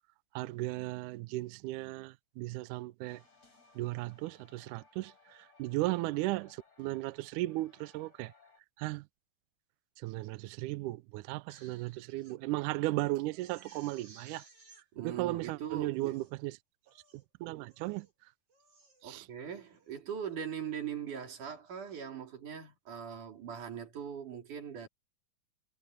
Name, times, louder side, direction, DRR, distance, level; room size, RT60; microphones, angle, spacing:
voice 1, 0.3-3.2 3.8-5.1 5.6-8.3 8.8-9.0 10.0-14.4 15.0-16.5 17.4-18.1 19.0-19.2, right 18 dB, 90° right, 1.7 m, -36 dB
sound 1, 3.1-8.6, left 4 dB, 45° left, 8.0 m, -64 dB
Crying sobbing, 11.3-12.4 12.8-12.9 13.3-14.8 15.5-15.6 15.9-16.4 16.9-17.3 17.7-18.1 18.5-19.2 19.7-20.0, right 4 dB, 40° right, 4.7 m, -59 dB
voice 2, 14.9-16.2 19.0-24.9, right 8 dB, 55° right, 4.7 m, -41 dB
omnidirectional pair, 4.3 m